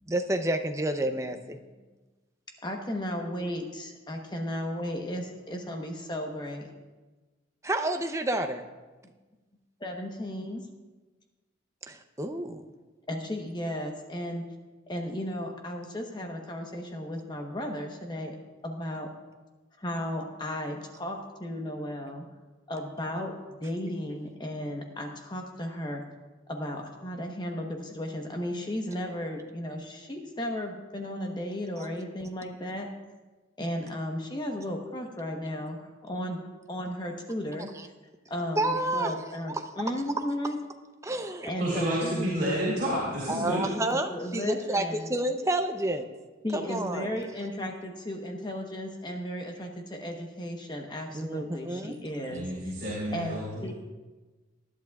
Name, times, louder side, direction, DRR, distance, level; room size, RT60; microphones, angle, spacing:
voice 1, 0.1-1.6 7.6-8.6 11.9-12.6 31.8-31.9 38.6-39.1 41.0-41.5 43.3-46.1 46.5-47.1 51.1-52.0, right 1 dB, 15° right, 6 dB, 0.6 m, -29 dB
voice 2, 2.6-6.7 9.8-10.7 13.1-14.4 14.9-18.4 18.6-19.1 19.8-22.2 22.7-26.0 26.5-32.9 33.6-36.4 36.7-37.7 38.3-40.6 41.5-42.3 43.5-45.1 46.4-52.5 53.1-53.7, left 1 dB, 20° left, 2 dB, 1.0 m, -35 dB
voice 3, 41.6-43.7 52.3-53.7, right 1 dB, 40° right, -8 dB, 3.7 m, -30 dB
19.5 x 11.0 x 2.4 m, 1.2 s
head